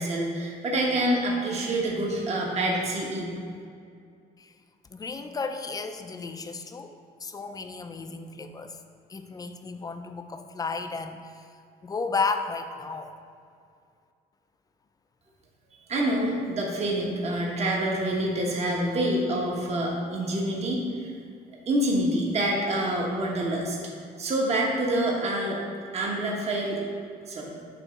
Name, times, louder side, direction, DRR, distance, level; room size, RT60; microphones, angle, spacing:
voice 1, 0.0-3.3 15.9-21.1 21.7-23.8 24.2-25.6 25.9-26.8 27.3-27.5, right 1 dB, 40° right, -2 dB, 1.3 m, -27 dB
voice 2, 4.9-6.9 7.2-8.8 9.1-11.5 11.8-13.1, left 4 dB, 20° left, 7 dB, 0.5 m, -33 dB
8.2 x 3.1 x 5.7 m, 2.3 s
cardioid pair, 110°, 17 cm